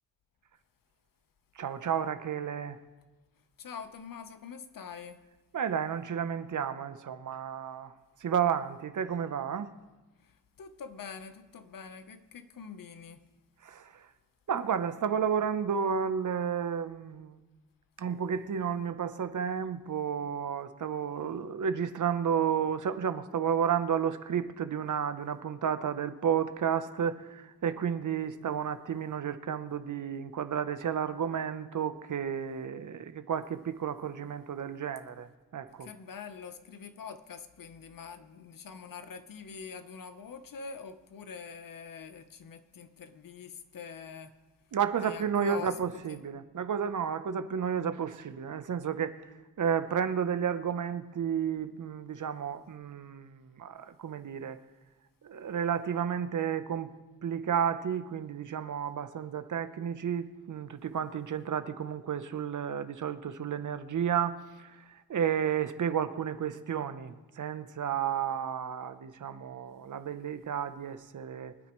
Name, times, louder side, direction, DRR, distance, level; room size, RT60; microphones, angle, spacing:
voice 1, 1.6-2.8 5.5-7.9 8.2-9.7 13.6-14.0 14.5-17.4 18.0-35.9 44.7-49.1 49.6-54.6 55.2-56.9 57.2-71.5, right 8 dB, 60° right, 0.9 m, -32 dB
voice 2, 3.4-5.2 10.2-13.2 35.8-44.4 45.0-46.2, left 6 dB, 70° left, 1.1 m, -45 dB
24.0 x 9.3 x 3.2 m
cardioid pair, 75°, 35 cm